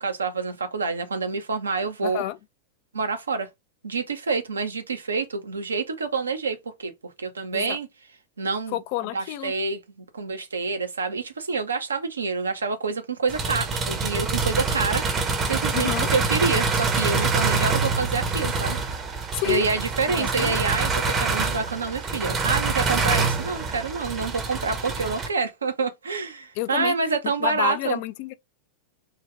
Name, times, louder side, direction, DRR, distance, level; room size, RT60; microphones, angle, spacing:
voice 1, 0.0-2.2 2.9-3.5 3.8-7.9 8.4-8.8 9.1-18.8 19.5-28.0, right 4 dB, 75° right, 0.7 m, -27 dB
voice 2, 2.0-2.4 7.5-7.8 8.7-9.5 15.7-16.1 19.3-19.7 20.1-20.6 26.6-26.9 27.4-28.3, left 15 dB, 45° left, 0.4 m, -29 dB
sound 1, 13.3-25.3, right 4 dB, 25° right, 0.8 m, -25 dB
3.2 x 2.3 x 3.3 m
figure-of-eight pair, 90°, 0 cm